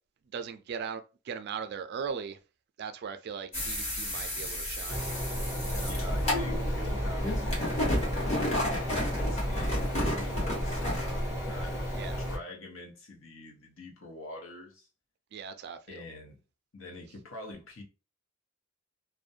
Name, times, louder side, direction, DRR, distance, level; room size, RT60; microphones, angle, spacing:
voice 1, 0.3-2.4 2.8-5.0 5.7-5.9 11.9-12.2 15.3-16.0, right 6 dB, 50° right, 0.3 m, -39 dB
sound 1, 3.5-11.2, left 1 dB, 30° left, 1.2 m, -32 dB
sound 2, 4.9-12.4, equal, 55° left, 1.2 m, -33 dB
voice 2, 5.8-14.9 15.9-16.4 16.7-17.8, left 2 dB, 70° left, 0.9 m, -46 dB
2.4 x 2.1 x 2.6 m
head